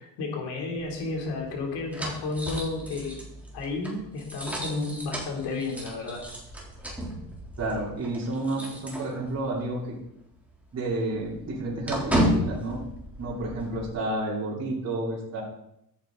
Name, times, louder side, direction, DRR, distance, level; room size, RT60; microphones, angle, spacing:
voice 1, 0.0-3.2 3.5-6.2, left 3 dB, 85° left, 0 dB, 3.6 m, -32 dB
sound 1, 0.8-9.6 9.9-10.1 10.4-13.9, equal, 5° right, 3.5 m, -34 dB
voice 2, 7.6-9.8 10.7-12.9 13.2-15.4, right 2 dB, 40° right, -5 dB, 3.7 m, -30 dB
13.5 x 9.1 x 4.1 m, 0.79 s
cardioid pair, 130°, 40 cm